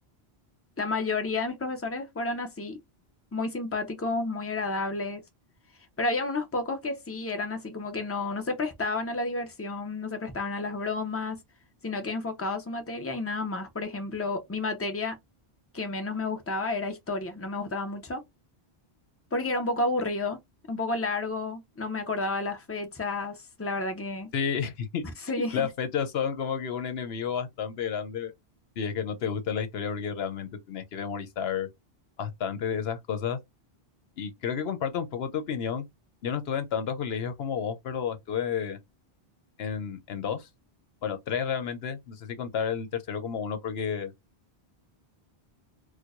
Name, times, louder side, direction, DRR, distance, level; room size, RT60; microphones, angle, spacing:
voice 1, 0.8-2.8 3.3-5.2 6.0-11.4 11.8-15.2 15.7-18.2 19.3-20.4 20.7-24.3 25.3-25.6, left 3 dB, 15° left, 0.7 m, -31 dB
voice 2, 24.3-25.0 25.5-28.3 28.8-31.7 32.2-33.4 34.2-35.9 36.2-38.8 39.6-40.5 41.0-44.1, left 7 dB, 80° left, 0.9 m, -31 dB
4.4 x 2.2 x 2.5 m
omnidirectional pair, 1.0 m